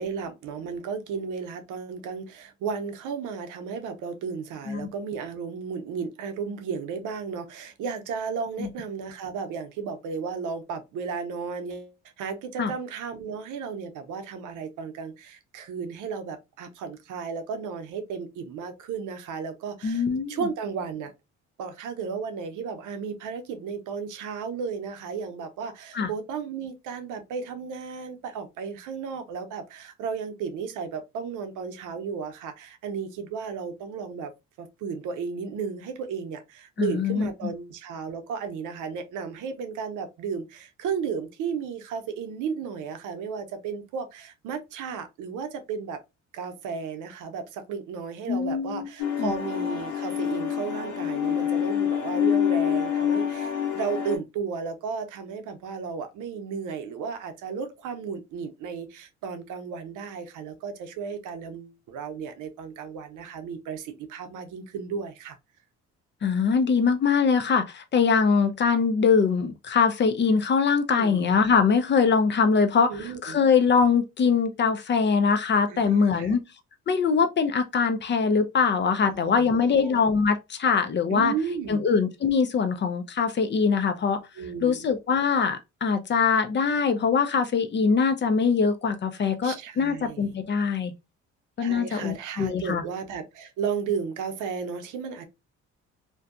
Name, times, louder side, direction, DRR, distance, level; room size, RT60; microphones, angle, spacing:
voice 1, 0.0-21.1 21.6-34.3 34.6-46.0 46.3-65.4 70.9-71.2 72.9-73.4 75.7-76.4 79.0-80.0 81.1-81.9 84.4-84.9 89.4-90.3 91.6-95.2, right 6 dB, 85° right, 0.6 m, -34 dB
voice 2, 19.8-20.5 25.9-26.1 36.8-37.3 48.3-48.9 49.2-49.3 66.2-76.4 76.9-81.3 81.7-84.2 84.6-90.9 91.6-92.8, left 5 dB, 35° left, 0.5 m, -23 dB
sound 1, 49.0-54.2, left 9 dB, 80° left, 0.7 m, -26 dB
2.6 x 2.2 x 2.4 m
cardioid pair, 90°, 30 cm